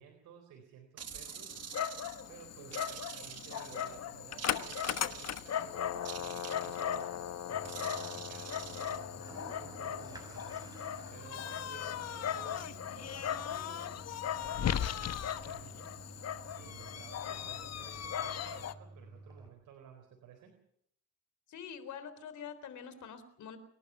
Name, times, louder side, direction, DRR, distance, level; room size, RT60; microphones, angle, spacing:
voice 1, 0.0-2.0 2.3-7.1 7.4-14.0 14.3-16.0 16.5-20.5, right 8 dB, 90° right, 3 dB, 4.1 m, -55 dB
Dog, 1.0-18.7, left 9 dB, 55° left, 1.3 m, -38 dB
sound 1, 1.0-2.3 2.7-4.0 4.4-5.6 6.0-7.0 7.6-9.0, right 10 dB, 55° right, 1.2 m, -47 dB
Toilet flush, 7.5-19.5, right 2 dB, 15° right, 7.3 m, -52 dB
voice 2, 21.5-23.6, left 7 dB, 75° left, 12 dB, 3.7 m, -45 dB
28.5 x 11.5 x 9.2 m, 0.69 s
cardioid pair, 90°, 30 cm